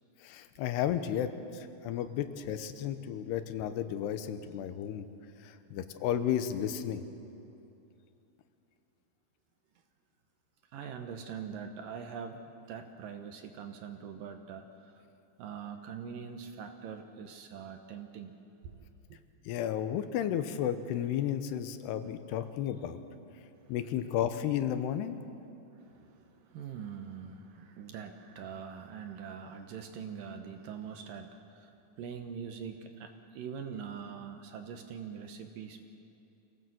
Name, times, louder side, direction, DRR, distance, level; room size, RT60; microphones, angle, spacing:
voice 1, 0.2-5.1 5.4-7.1 19.5-23.0 23.7-25.2, left 10 dB, 85° left, 10 dB, 3.0 m, -33 dB
voice 2, 10.7-15.1 15.4-18.4 18.6-18.7 19.1-19.2 22.4-22.5 25.7-35.8, right 7 dB, 70° right, 6 dB, 2.3 m, -43 dB
25.0 x 17.0 x 7.8 m, 2.8 s
omnidirectional pair, 4.7 m